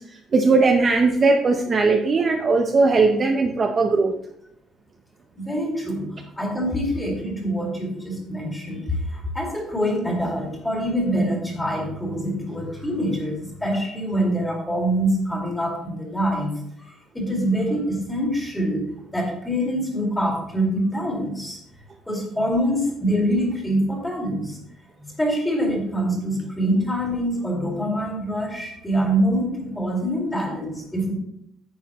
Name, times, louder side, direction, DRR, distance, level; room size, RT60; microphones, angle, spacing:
voice 1, 0.3-4.1, right 3 dB, 25° right, 3 dB, 0.6 m, -18 dB
voice 2, 5.4-18.9 19.1-21.6 22.1-24.6 25.0-31.1, equal, 5° left, -1 dB, 2.1 m, -25 dB
10.0 x 8.2 x 3.0 m, 0.78 s
cardioid pair, 175°, 0 cm